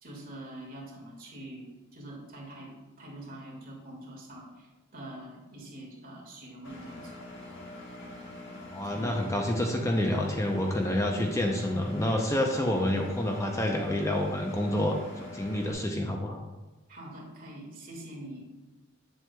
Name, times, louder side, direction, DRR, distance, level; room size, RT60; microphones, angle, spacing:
voice 1, 0.0-2.7 3.0-7.1 8.8-9.2 16.9-18.4, right 1 dB, 45° right, -2 dB, 1.9 m, -44 dB
Engine, 6.6-15.7, left 2 dB, 65° left, 1.7 m, -44 dB
voice 2, 8.7-16.4, left 1 dB, 15° left, 2 dB, 0.5 m, -28 dB
8.2 x 7.5 x 2.2 m, 1.1 s
head